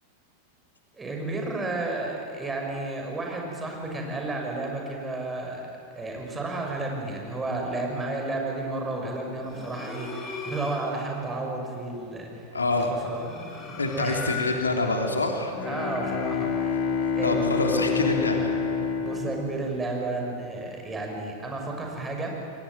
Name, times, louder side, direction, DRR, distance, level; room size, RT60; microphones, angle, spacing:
voice 1, 0.9-13.3 14.0-14.3 15.6-17.5 19.0-22.4, right 2 dB, 15° right, 1 dB, 6.3 m, -32 dB
sound 1, 9.4-11.0 12.9-14.9, left 4 dB, 25° left, 6.5 m, -37 dB
voice 2, 12.5-12.9 13.8-15.5 17.2-18.5, left 2 dB, 75° left, 3 dB, 3.1 m, -26 dB
Bowed string instrument, 15.5-20.4, left 6 dB, 45° left, 2.8 m, -28 dB
28.5 x 22.5 x 9.2 m, 2.6 s
figure-of-eight pair, 90°, 0 cm